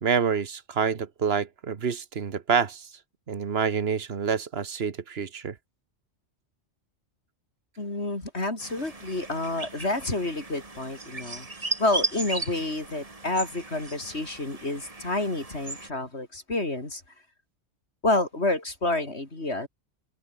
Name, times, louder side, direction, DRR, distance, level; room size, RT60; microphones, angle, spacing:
voice 1, 0.0-2.9 3.3-5.5, right 6 dB, 65° right, 1.5 m, -27 dB
voice 2, 7.8-11.5 11.8-17.0 18.0-19.7, left 2 dB, 70° left, 4.8 m, -29 dB
sound 1, 8.6-15.9, right 2 dB, 30° right, 2.2 m, -36 dB
omnidirectional pair, 1.2 m